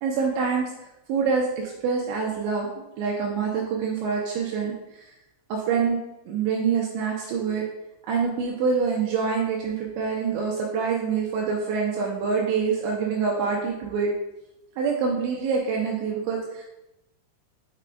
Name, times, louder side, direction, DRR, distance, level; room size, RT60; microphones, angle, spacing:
voice 1, 0.0-0.7 1.1-2.7 3.0-5.1 5.5-6.0 6.3-7.7 8.1-14.1 14.8-16.6, right 5 dB, 85° right, -1 dB, 2.7 m, -26 dB
6.8 x 5.9 x 2.3 m, 0.91 s
omnidirectional pair, 5.8 m